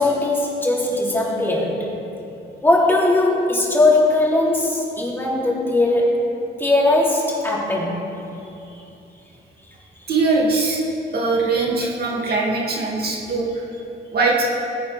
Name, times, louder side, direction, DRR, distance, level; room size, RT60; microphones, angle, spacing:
voice 1, 0.0-1.9 2.6-6.3 6.6-8.0, left 2 dB, 10° left, -4 dB, 3.1 m, -19 dB
voice 2, 10.1-10.8 11.1-13.6 14.1-14.4, right 3 dB, 50° right, -3 dB, 2.4 m, -21 dB
19.5 x 9.6 x 3.5 m, 2.7 s
cardioid pair, 90°, 20 cm